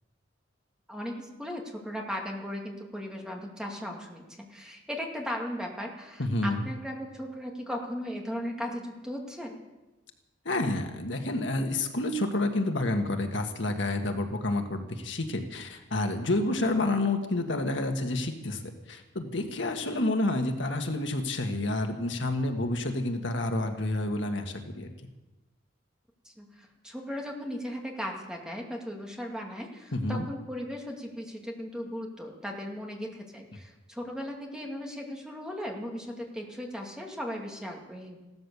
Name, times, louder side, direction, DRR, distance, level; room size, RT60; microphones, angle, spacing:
voice 1, 0.9-9.6 26.2-38.2, equal, 5° right, 0 dB, 2.3 m, -37 dB
voice 2, 6.2-6.7 10.4-24.9 29.9-30.3, left 2 dB, 70° left, 5 dB, 1.6 m, -29 dB
16.0 x 13.0 x 6.9 m, 1.1 s
head